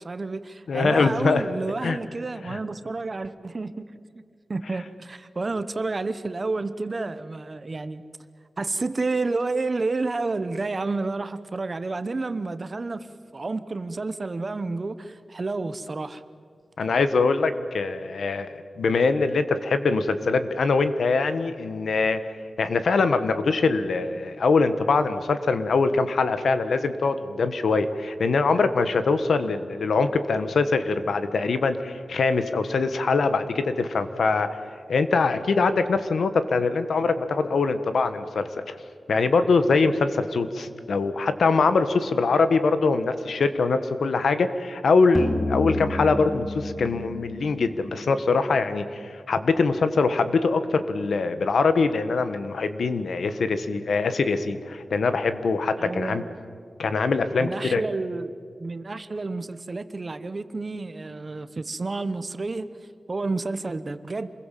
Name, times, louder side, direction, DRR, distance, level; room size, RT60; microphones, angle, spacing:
voice 1, 0.0-3.8 4.5-8.0 8.6-13.1 13.3-16.2 55.8-56.4 57.4-58.3 58.6-62.7 63.1-64.3, right 3 dB, 35° right, 12 dB, 1.0 m, -30 dB
voice 2, 0.7-1.4 1.8-2.0 2.4-2.6 16.8-18.5 18.8-22.2 22.6-34.5 34.9-38.8 39.1-56.2 56.8-57.8, left 4 dB, 80° left, 10 dB, 1.5 m, -23 dB
sound 1, 45.1-48.4, left 2 dB, 5° left, 1.3 m, -30 dB
27.5 x 21.5 x 7.6 m, 2.2 s
wide cardioid pair, 165°, 0 cm